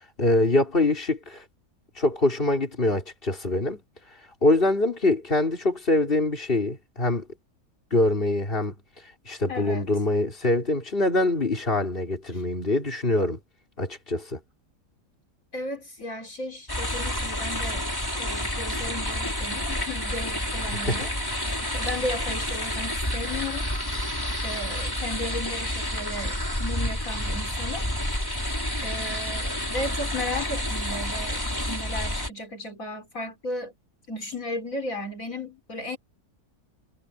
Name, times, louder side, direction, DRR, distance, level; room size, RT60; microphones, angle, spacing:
voice 1, 0.0-1.4 2.0-3.8 4.4-7.2 7.9-8.7 9.3-13.4 13.8-14.4 20.8-21.1, left 2 dB, 35° left, 4.5 m, -24 dB
voice 2, 9.5-9.9 12.3-12.4 15.5-17.9 18.1-21.1 21.7-23.7 24.4-27.9 28.8-31.4 31.7-33.7 34.1-36.0, left 1 dB, 60° left, 4.2 m, -35 dB
sound 1, 16.7-32.3, left 1 dB, 15° left, 4.8 m, -29 dB
omnidirectional pair, 1.6 m